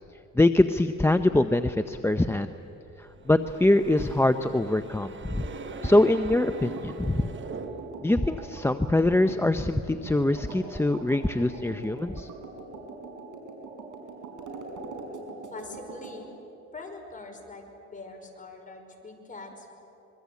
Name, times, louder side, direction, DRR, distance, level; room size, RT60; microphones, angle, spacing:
voice 1, 0.4-2.5 3.3-5.4 5.8-7.2 8.0-12.3, left 1 dB, 10° left, 9 dB, 0.7 m, -23 dB
sound 1, 3.0-8.2, right 5 dB, 40° right, 1.3 m, -42 dB
sound 2, 5.4-16.2, right 3 dB, 80° right, 4.7 m, -42 dB
voice 2, 15.5-16.3 16.7-19.7, left 3 dB, 25° left, 3 dB, 5.2 m, -43 dB
25.0 x 23.0 x 8.4 m, 2.9 s
cardioid pair, 90°, 30 cm